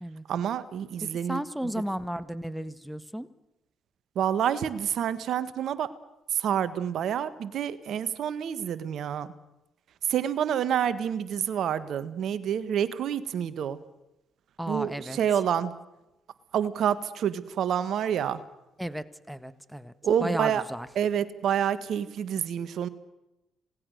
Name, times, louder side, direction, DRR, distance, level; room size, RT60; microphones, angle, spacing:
voice 1, 0.3-1.4 4.1-5.9 6.4-9.3 10.1-13.8 14.7-15.7 16.5-18.4 20.0-20.6 20.9-22.9, right 9 dB, 65° right, 14 dB, 1.5 m, -28 dB
voice 2, 1.3-3.3 14.6-15.2 18.8-19.9 20.2-20.9, equal, 5° right, 13 dB, 1.6 m, -34 dB
27.0 x 19.0 x 6.6 m, 0.93 s
hypercardioid pair, 50°, 0 cm